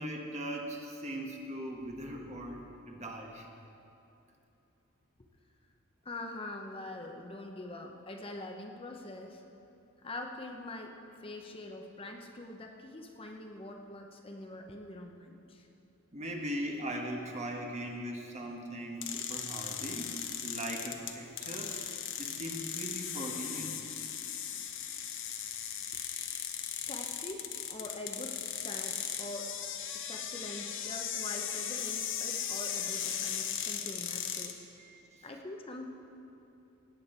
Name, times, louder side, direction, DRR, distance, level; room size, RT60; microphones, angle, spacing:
voice 1, 0.0-3.5 16.1-20.1 20.4-21.8 22.2-23.7 34.8-35.3, right 1 dB, 35° right, 1 dB, 1.2 m, -39 dB
voice 2, 6.0-9.4 10.0-15.7 26.9-29.5 29.9-34.6 35.2-35.9, left 2 dB, 25° left, 3 dB, 0.7 m, -44 dB
sound 1, 19.0-34.5, left 9 dB, 60° left, 0.8 m, -37 dB
17.5 x 8.6 x 4.4 m, 2.9 s
head